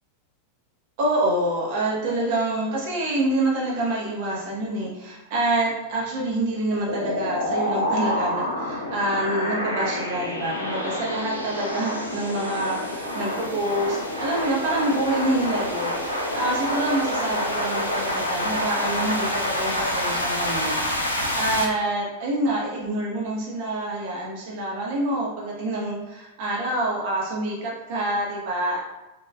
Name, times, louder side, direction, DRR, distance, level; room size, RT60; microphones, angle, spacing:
voice 1, 1.0-28.9, right 1 dB, 50° right, -4 dB, 0.6 m, -27 dB
sound 1, 6.9-21.6, left 1 dB, 85° left, 0.4 m, -27 dB
3.3 x 2.2 x 2.3 m, 1.0 s
figure-of-eight pair, 90°, 0 cm